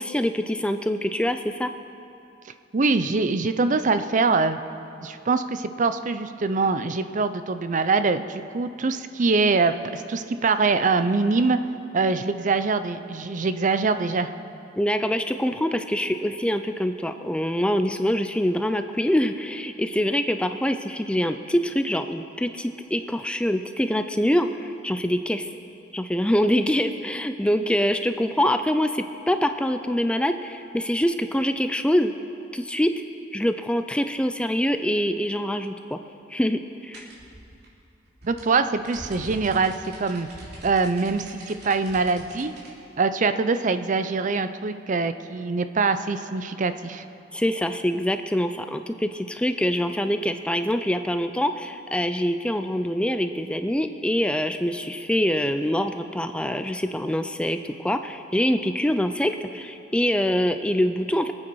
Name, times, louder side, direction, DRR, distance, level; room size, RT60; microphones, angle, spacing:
voice 1, 0.0-1.7 14.8-25.5 25.9-32.1 32.5-32.9 33.3-36.0 36.3-37.1 47.3-61.3, equal, 5° left, 8 dB, 0.4 m, -25 dB
voice 2, 2.7-4.6 5.0-11.6 11.9-14.3 38.2-40.3 40.6-42.5 43.0-47.0, right 4 dB, 45° right, 10 dB, 0.6 m, -23 dB
sound 1, 36.9-42.7, right 1 dB, 60° right, 3.2 m, -43 dB
24.5 x 8.8 x 4.7 m, 2.7 s
head